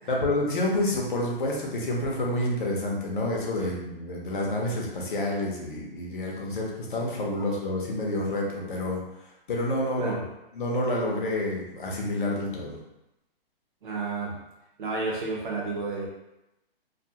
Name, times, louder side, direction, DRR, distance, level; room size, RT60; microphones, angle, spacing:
voice 1, 0.1-9.0 9.5-10.1 10.5-12.8, left 1 dB, 60° left, -2 dB, 0.8 m, -28 dB
voice 2, 13.8-14.3 14.8-16.1, right 3 dB, 55° right, -2 dB, 0.8 m, -31 dB
2.4 x 2.3 x 2.8 m, 0.93 s
hypercardioid pair, 165°, 30 cm